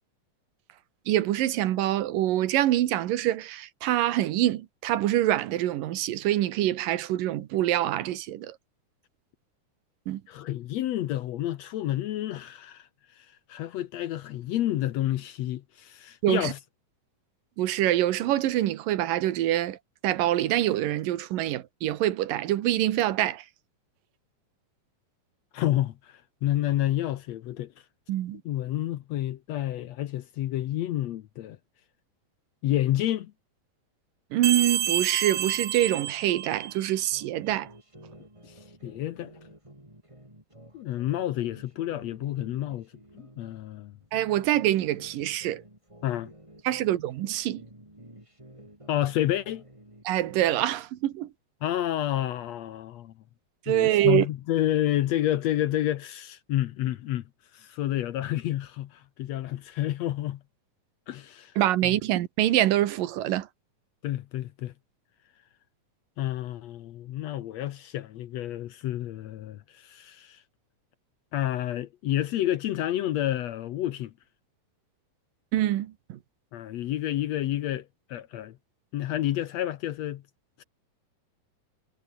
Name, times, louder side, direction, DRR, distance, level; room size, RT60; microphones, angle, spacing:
voice 1, 1.1-8.6 10.1-10.2 16.2-16.5 17.6-19.8 20.0-23.5 28.1-28.4 34.3-37.7 44.1-45.6 46.6-47.6 50.0-51.3 53.7-54.3 61.6-63.5 75.5-76.2, right 13 dB, 85° right, 2.9 m, -25 dB
voice 2, 10.3-12.9 13.2-16.6 25.5-27.7 28.5-31.6 32.6-33.3 38.4-39.3 40.7-42.9 43.1-43.9 46.0-46.3 48.9-49.6 51.6-53.1 53.7-57.2 57.5-60.4 61.1-61.5 61.8-61.9 64.0-64.7 66.2-70.4 71.3-74.1 76.5-78.6 78.9-80.2 80.6-80.7, left 13 dB, 70° left, 1.8 m, -29 dB
sound 1, 34.4-37.0, right 10 dB, 60° right, 1.3 m, -29 dB
sound 2, 37.1-43.6 44.0-47.3 47.6-50.7, right 1 dB, 10° right, 6.1 m, -51 dB
omnidirectional pair, 3.8 m